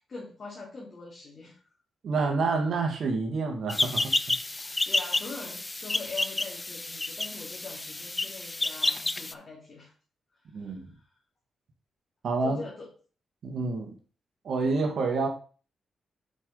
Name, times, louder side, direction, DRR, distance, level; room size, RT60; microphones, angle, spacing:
voice 1, 0.1-1.6 4.6-9.9 10.5-11.0 12.4-12.9, left 3 dB, 45° left, -4 dB, 2.1 m, -43 dB
voice 2, 2.0-4.1 10.5-10.9 12.2-12.6 13.4-13.9 14.4-15.3, right 3 dB, 70° right, 3 dB, 1.6 m, -28 dB
sound 1, 3.7-9.3, left 2 dB, 20° left, 0.4 m, -30 dB
6.1 x 5.4 x 3.8 m, 0.38 s
cardioid pair, 85°, 0 cm